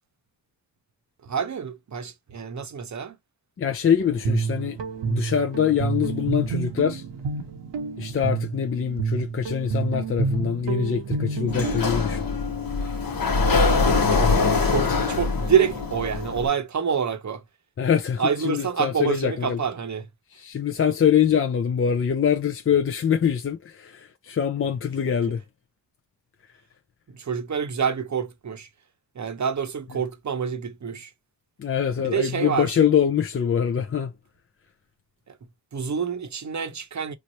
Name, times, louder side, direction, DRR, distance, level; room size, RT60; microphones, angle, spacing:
voice 1, 1.2-3.2 13.8-17.4 18.2-20.1 25.1-25.2 27.1-28.7 29.1-31.1 32.0-32.8 35.3-35.4 35.7-37.1, right 7 dB, 40° right, 0.8 m, -27 dB
voice 2, 3.6-4.8 5.0-7.0 8.0-12.3 17.8-19.6 20.3-25.4 31.6-34.1, left 8 dB, 35° left, 0.4 m, -24 dB
Guitar, 4.0-12.0, right 5 dB, 80° right, 0.9 m, -29 dB
Sliding door, 11.5-16.5, left 4 dB, 55° left, 1.0 m, -23 dB
3.1 x 2.0 x 4.0 m
cardioid pair, 70°, 43 cm